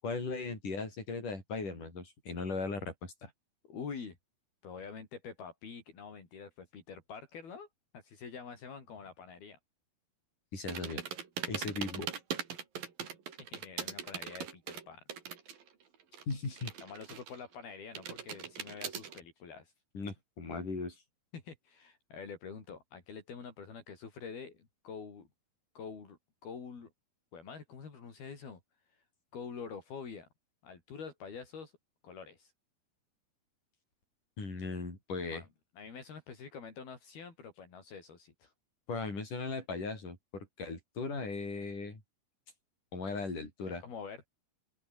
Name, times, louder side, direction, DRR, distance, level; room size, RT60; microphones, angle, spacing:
voice 1, 0.0-3.3 10.5-11.0 11.5-12.1 16.3-16.7 19.9-21.0 34.4-35.4 38.9-42.0 42.9-43.8, left 4 dB, 55° left, 9.4 m, -38 dB
voice 2, 3.7-4.2 4.6-7.7 7.9-9.6 13.4-15.0 16.8-19.7 21.3-25.3 25.7-26.9 27.3-28.6 28.9-29.0 29.3-30.3 30.6-31.7 32.0-32.5 35.3-35.5 35.8-38.5 43.6-44.3, left 6 dB, 70° left, 6.8 m, -46 dB
sound 1, 10.7-15.7 15.9-17.5 18.0-19.2, right 7 dB, 65° right, 4.7 m, -40 dB
omnidirectional pair, 4.5 m